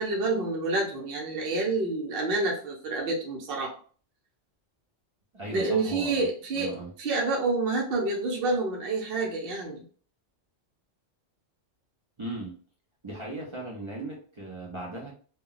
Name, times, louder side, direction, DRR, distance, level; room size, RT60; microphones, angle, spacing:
voice 1, 0.0-3.7 5.5-6.7 7.0-9.8, right 3 dB, 55° right, -1 dB, 0.8 m, -28 dB
voice 2, 5.3-6.3 6.5-6.9 12.2-12.6 13.0-15.1, right 2 dB, 40° right, -3 dB, 0.4 m, -37 dB
2.2 x 2.2 x 3.7 m, 0.42 s
omnidirectional pair, 1.3 m